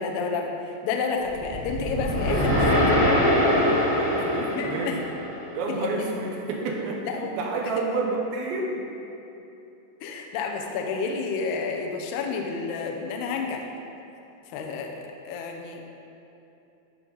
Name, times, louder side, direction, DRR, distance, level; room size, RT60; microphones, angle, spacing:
voice 1, 0.0-2.6 4.4-5.0 5.8-5.9 7.1-7.3 10.0-13.7 14.5-15.9, left 4 dB, 85° left, 2 dB, 2.3 m, -30 dB
sound 1, 1.3-5.6, left 1 dB, 55° left, 1.2 m, -23 dB
voice 2, 2.3-5.0 5.5-8.8, right 3 dB, 75° right, 0 dB, 2.7 m, -30 dB
14.0 x 6.1 x 4.0 m, 2.8 s
omnidirectional pair, 5.8 m